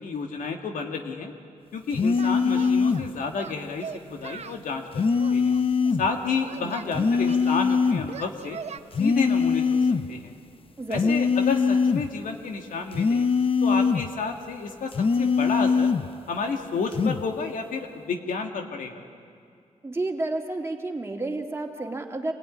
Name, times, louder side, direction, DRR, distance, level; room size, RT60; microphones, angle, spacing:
voice 1, 0.0-1.3 1.7-5.0 5.3-5.6 6.0-8.6 9.0-9.8 10.1-10.3 10.9-13.3 13.6-14.9 15.2-15.9 16.3-19.0, left 5 dB, 85° left, 3 dB, 2.2 m, -30 dB
sound 1, 1.9-3.1 4.9-6.1 6.9-8.1 8.9-10.1 10.9-12.1 12.9-14.1 14.9-16.1 16.9-17.2, left 5 dB, 40° left, 0.8 m, -22 dB
Singing, 2.1-3.1 3.4-4.6 5.2-6.9 7.3-8.8, right 6 dB, 50° right, 0.9 m, -40 dB
voice 2, 6.6-7.1 10.8-11.2 19.8-22.3, right 2 dB, 20° right, 2 dB, 2.6 m, -31 dB
26.0 x 17.5 x 10.0 m, 2.3 s
cardioid pair, 90°, 14 cm